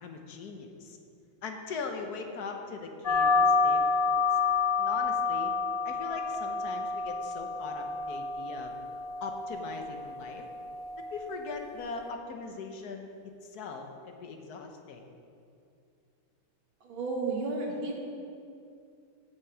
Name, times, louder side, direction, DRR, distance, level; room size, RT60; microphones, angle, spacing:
voice 1, 0.0-1.0 1.4-4.2 4.8-5.5 5.8-8.7 9.2-10.4 11.1-15.0, left 4 dB, 55° left, 4 dB, 1.3 m, -40 dB
sound 1, 3.0-12.1, left 4 dB, 40° left, 0.8 m, -29 dB
voice 2, 16.8-18.0, right 3 dB, 70° right, 0 dB, 2.2 m, -32 dB
16.0 x 6.1 x 4.9 m, 2.5 s
omnidirectional pair, 2.3 m